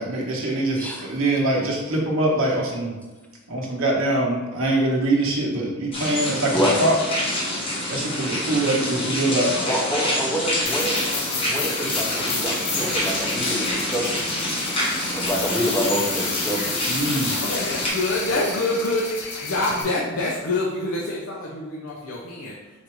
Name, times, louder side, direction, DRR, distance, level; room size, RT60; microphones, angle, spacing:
voice 1, 0.0-2.9 3.5-7.0 7.9-9.6 16.8-17.3, right 1 dB, 65° right, -3 dB, 1.0 m, -23 dB
voice 2, 0.8-1.1 6.5-6.8 9.7-11.0 11.5-14.5 15.1-16.8, equal, 5° left, -1 dB, 0.6 m, -27 dB
sound 1, 5.9-17.9, left 1 dB, 25° left, 0.9 m, -27 dB
voice 3, 8.3-10.1 10.5-10.6 10.8-12.7 17.4-19.0 19.4-22.6, left 2 dB, 75° left, -4 dB, 0.6 m, -28 dB
sound 2, 10.6-19.8, left 4 dB, 55° left, 1.0 m, -31 dB
4.1 x 2.6 x 4.5 m, 1.2 s
head